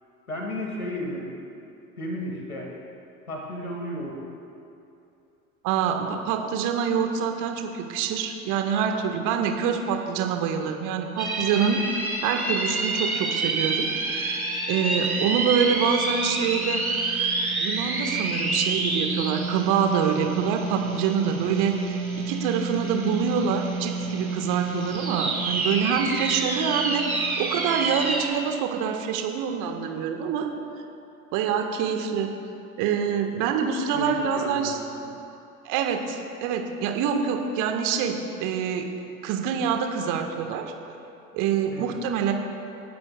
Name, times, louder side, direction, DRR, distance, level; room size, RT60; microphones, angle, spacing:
voice 1, 0.3-1.3 2.0-2.7 3.3-4.2 33.9-34.7 35.0-35.1 41.7-41.9, left 1 dB, 85° left, -1 dB, 2.1 m, -33 dB
voice 2, 5.6-16.8 17.6-30.5 31.3-32.3 32.8-34.8 35.6-38.9 39.2-40.6 41.3-42.3, right 7 dB, 45° right, 4 dB, 1.6 m, -26 dB
sound 1, 11.2-28.3, right 3 dB, 90° right, 1.6 m, -28 dB
29.0 x 12.0 x 2.4 m, 2.7 s
figure-of-eight pair, 70°, 42 cm